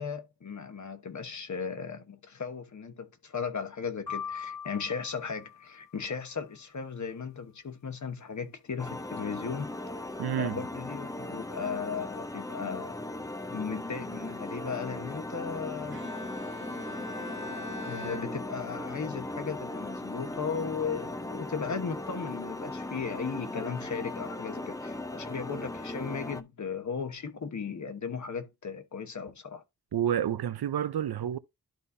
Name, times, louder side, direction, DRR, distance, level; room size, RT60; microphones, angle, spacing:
voice 1, 0.0-9.7 10.4-13.0 13.5-16.0 17.8-29.6, left 6 dB, 50° left, 1.1 m, -36 dB
sound 1, 4.1-6.2, left 7 dB, 70° left, 3.0 m, -41 dB
sound 2, 8.8-26.4, left 1 dB, 10° left, 0.5 m, -38 dB
voice 2, 10.2-10.6 29.9-31.4, right 10 dB, 90° right, 0.6 m, -29 dB
Bowed string instrument, 15.9-19.0, left 1 dB, 30° right, 1.4 m, -43 dB
12.0 x 4.1 x 2.7 m
wide cardioid pair, 135°, 37 cm